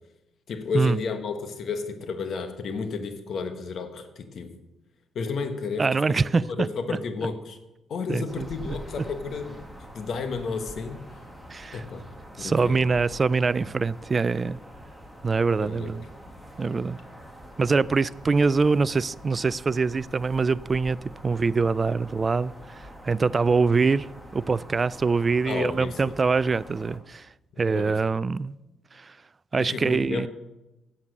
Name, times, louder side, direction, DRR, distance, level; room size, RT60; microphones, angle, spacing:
voice 1, 0.5-4.5 5.1-6.2 6.5-7.6 7.9-9.6 9.9-11.2 11.7-12.0 12.4-12.9 15.6-16.0 25.4-26.1 27.7-28.0 29.6-30.3, left 4 dB, 60° left, 8 dB, 1.3 m, -32 dB
voice 2, 5.8-6.4 6.9-7.0 8.1-8.7 11.5-11.8 12.4-14.6 15.2-16.0 16.6-17.0 17.6-21.0 21.2-24.1 24.3-27.3 27.6-28.5 29.0-29.1 29.5-30.3, right 4 dB, 30° right, 19 dB, 0.3 m, -24 dB
sound 1, 8.3-27.0, equal, ahead, 1.8 m, -45 dB
9.7 x 7.5 x 6.7 m, 0.98 s
cardioid pair, 90°, 0 cm